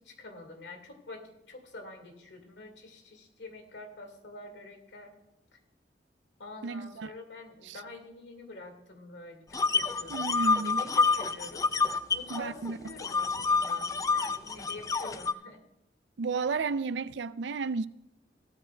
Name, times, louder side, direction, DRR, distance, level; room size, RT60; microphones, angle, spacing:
voice 1, 0.0-5.1 6.4-11.6 12.1-15.6, left 2 dB, 80° left, 1.9 m, -46 dB
voice 2, 6.6-7.1 7.7-7.8 10.1-10.8 12.3-12.8 16.2-17.9, right 4 dB, 80° right, 0.4 m, -32 dB
sound 1, 9.5-12.4 12.7-15.3, left 4 dB, 20° left, 0.4 m, -28 dB
16.0 x 13.0 x 2.2 m
head